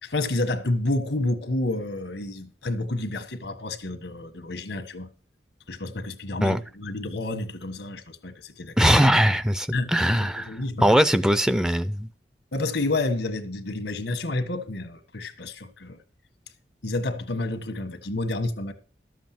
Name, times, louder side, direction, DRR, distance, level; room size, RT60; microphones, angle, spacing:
voice 1, 0.0-5.1 5.7-8.9 9.7-11.0 12.5-16.0 16.8-18.7, left 2 dB, 80° left, 1.4 m, -29 dB
voice 2, 8.8-10.5 10.8-12.1, equal, 5° right, 0.4 m, -20 dB
12.5 x 7.4 x 5.9 m
head